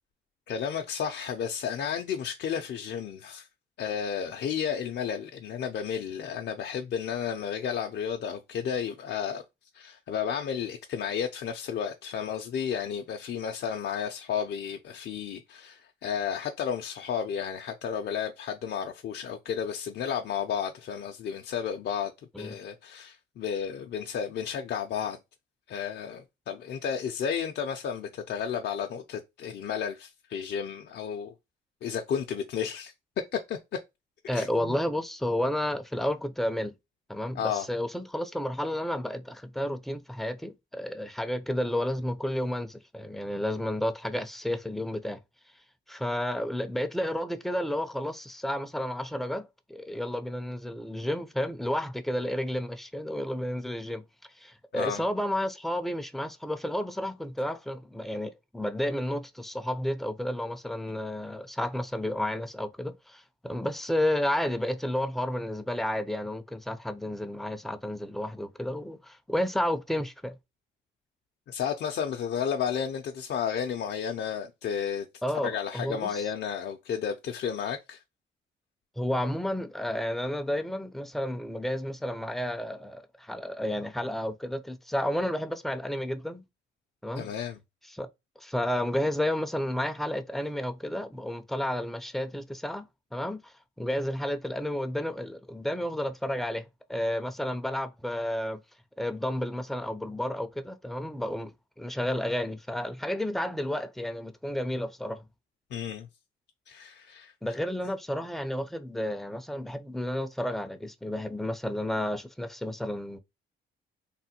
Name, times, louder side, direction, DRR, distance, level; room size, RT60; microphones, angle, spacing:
voice 1, 0.5-3.5 3.8-9.4 9.7-22.1 22.4-25.2 25.7-31.3 31.8-32.9 33.3-33.6 34.3-34.8 37.3-37.7 54.7-55.0 71.5-75.1 75.4-78.0 87.2-87.6 105.7-106.1 106.7-107.3, left 7 dB, 60° left, 0.5 m, -32 dB
voice 2, 34.3-36.7 37.1-45.2 45.9-54.0 54.4-70.4 75.2-76.3 79.0-86.4 87.0-87.3 87.9-88.1 88.4-92.8 93.1-96.6 96.9-98.6 99.0-105.2 107.4-113.2, left 1 dB, ahead, 0.4 m, -31 dB
3.2 x 2.1 x 2.8 m
cardioid pair, 90°, 20 cm